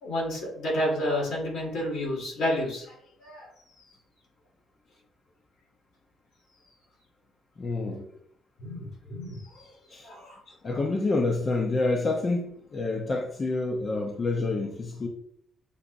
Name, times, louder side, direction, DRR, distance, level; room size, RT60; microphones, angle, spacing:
voice 1, 0.0-2.9 3.2-3.5 8.6-9.7 10.0-10.4 10.7-10.8, equal, 80° left, -2 dB, 1.8 m, -30 dB
voice 2, 7.6-8.1 9.9-10.1 10.6-15.1, left 3 dB, 40° left, 1 dB, 0.7 m, -28 dB
6.8 x 2.9 x 2.6 m, 0.64 s
cardioid pair, 105°, 0 cm